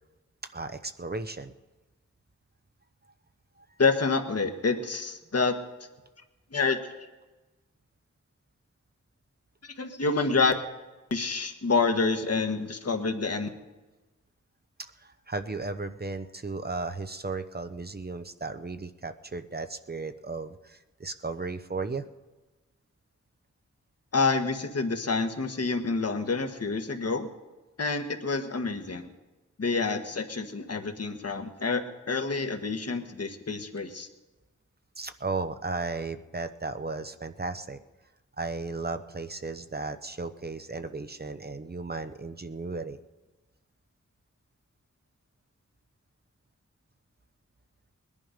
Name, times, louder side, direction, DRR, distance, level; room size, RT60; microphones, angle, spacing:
voice 1, 0.5-1.5 3.6-3.7 14.8-22.1 35.0-37.8 38.4-43.0, right 3 dB, 35° right, 9 dB, 0.8 m, -35 dB
voice 2, 3.8-5.6 6.5-6.8 9.6-10.5 11.1-13.5 24.1-27.3 27.8-29.1 29.6-34.1, left 4 dB, 55° left, 6 dB, 1.5 m, -28 dB
20.5 x 11.0 x 5.2 m, 1.1 s
wide cardioid pair, 70°, 30 cm